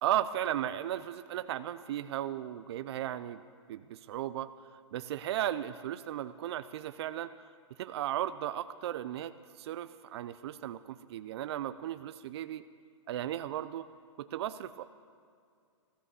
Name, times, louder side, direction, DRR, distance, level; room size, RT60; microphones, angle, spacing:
voice 1, 0.0-3.4 3.7-4.5 4.9-7.3 7.8-12.6 13.1-13.9 14.2-14.8, right 12 dB, 55° right, 12 dB, 0.5 m, -35 dB
14.5 x 14.0 x 6.9 m, 2.3 s
hypercardioid pair, 145°, 16 cm